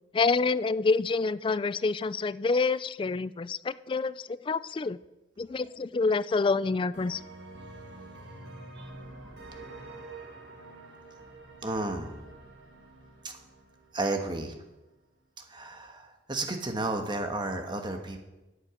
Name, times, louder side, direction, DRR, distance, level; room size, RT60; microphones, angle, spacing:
voice 1, 0.1-5.0 5.4-7.2, left 4 dB, 30° left, 17 dB, 0.3 m, -27 dB
sound 1, 6.9-14.6, right 2 dB, 90° right, 2.3 m, -47 dB
voice 2, 7.9-8.2 8.8-8.9 11.6-12.2 13.2-13.3 13.9-14.5 15.4-18.2, right 2 dB, 25° right, 5 dB, 1.4 m, -33 dB
14.0 x 10.0 x 5.1 m, 1.0 s
head